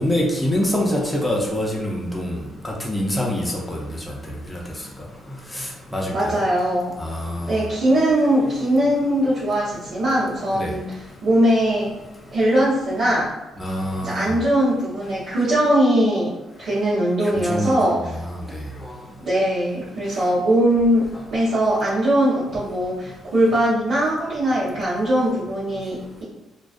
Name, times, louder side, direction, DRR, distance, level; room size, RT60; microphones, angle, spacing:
voice 1, 0.0-2.4 2.6-3.4 3.7-3.8 4.5-4.6 5.6-5.7 5.9-6.4 7.0-7.6 10.5-10.7 13.6-14.4 17.5-17.7 18.2-18.4, left 1 dB, 5° left, -3 dB, 0.5 m, -24 dB
voice 2, 6.1-6.9 7.5-11.9 12.3-13.3 14.0-18.2 19.2-26.2, right 1 dB, 80° right, -12 dB, 0.9 m, -20 dB
2.2 x 2.2 x 2.5 m, 1.0 s
cardioid pair, 90°, 0 cm